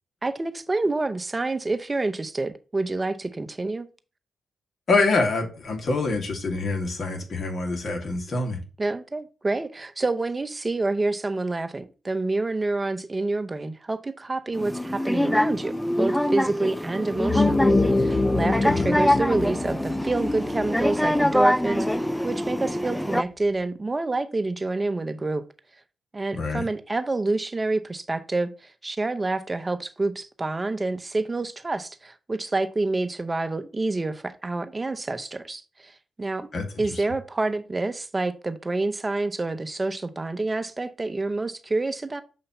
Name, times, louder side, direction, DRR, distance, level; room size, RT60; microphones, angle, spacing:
voice 1, 0.2-3.9 8.8-25.4 26.1-35.9 36.2-36.5 36.8-42.2, right 2 dB, 30° right, 0.8 m, -28 dB
voice 2, 4.9-8.6 18.7-18.9 26.3-26.7 36.5-37.0, left 3 dB, 60° left, 2.0 m, -26 dB
sound 1, 14.5-23.2, left 1 dB, 5° left, 0.4 m, -25 dB
sound 2, 17.1-22.0, left 2 dB, 35° left, 0.7 m, -25 dB
6.8 x 2.9 x 5.4 m
supercardioid pair, 50°, 0 cm